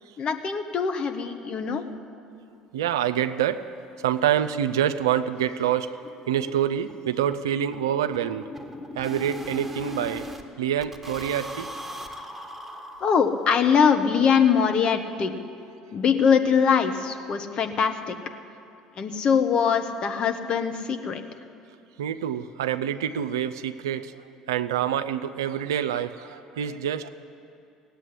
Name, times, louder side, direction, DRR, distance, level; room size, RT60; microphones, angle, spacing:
voice 1, 0.2-1.8 13.0-15.3 15.9-18.1 19.0-21.2, left 6 dB, 50° left, 7 dB, 1.2 m, -22 dB
voice 2, 2.7-3.7 4.0-6.0 6.3-8.5 9.0-10.3 10.6-11.7 22.0-24.2 24.5-27.1, right 10 dB, 85° right, 11 dB, 0.5 m, -26 dB
sound 1, 3.6-3.7 4.0-4.1 4.4-4.5 4.8-5.0 5.2-10.4 10.8-13.6, left 1 dB, 5° right, 1.6 m, -39 dB
17.0 x 8.2 x 9.8 m, 2.5 s
hypercardioid pair, 65°, 2 cm